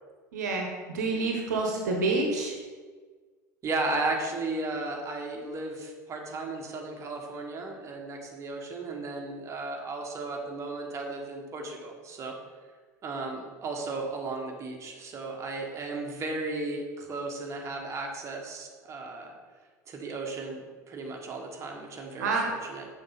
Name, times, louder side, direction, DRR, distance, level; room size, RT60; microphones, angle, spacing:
voice 1, 0.3-0.7 0.9-2.5 22.2-22.5, right 3 dB, 70° right, 2 dB, 1.2 m, -27 dB
voice 2, 3.6-12.4 13.0-19.3 19.9-22.9, right 3 dB, 30° right, 1 dB, 1.4 m, -35 dB
6.9 x 6.5 x 4.1 m, 1.4 s
figure-of-eight pair, 75°, 10 cm